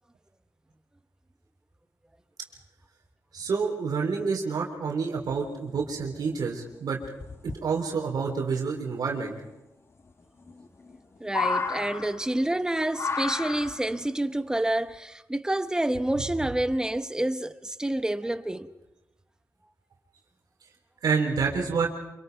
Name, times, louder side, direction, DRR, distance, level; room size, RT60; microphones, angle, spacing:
voice 1, 3.3-7.0 7.6-9.4 21.0-21.9, right 5 dB, 75° right, 3.4 m, -28 dB
sound 1, 6.0-6.1 6.3-6.4 7.0-7.6 9.1-9.2 10.5-11.0 11.2-12.5 12.9-14.0 14.9-15.0, left 4 dB, 40° left, 1.2 m, -31 dB
voice 2, 11.2-18.7, right 1 dB, 10° right, 1.0 m, -28 dB
26.5 x 24.5 x 4.6 m
cardioid pair, 95°, 7 cm